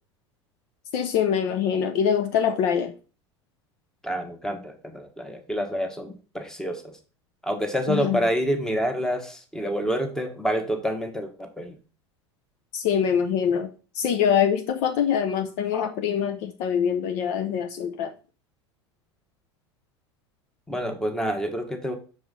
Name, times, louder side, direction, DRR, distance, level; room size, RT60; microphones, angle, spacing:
voice 1, 0.9-2.9 7.9-8.2 12.7-18.1, left 8 dB, 50° left, 0.7 m, -24 dB
voice 2, 4.0-7.0 7.4-11.8 20.7-21.9, equal, 5° left, 1.3 m, -28 dB
6.4 x 4.7 x 3.9 m
figure-of-eight pair, 75°, 15 cm